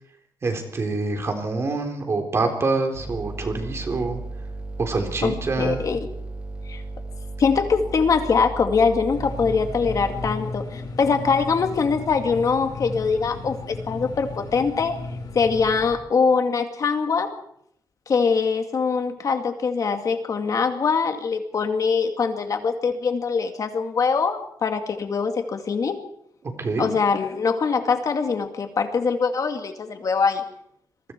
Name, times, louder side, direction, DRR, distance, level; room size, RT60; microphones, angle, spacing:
voice 1, 0.4-4.2 4.8-5.8 26.6-26.9, right 3 dB, 40° right, 4 dB, 3.7 m, -26 dB
sound 1, 2.9-10.2, right 2 dB, 15° right, 5.0 m, -35 dB
voice 2, 5.2-6.0 6.7-6.8 7.4-15.0 15.3-17.3 18.1-26.0 26.8-30.4, left 5 dB, 50° left, 6 dB, 2.2 m, -23 dB
sound 2, 9.1-16.0, left 2 dB, 65° left, 4.3 m, -35 dB
27.0 x 22.5 x 4.6 m, 0.70 s
wide cardioid pair, 175°, 7 cm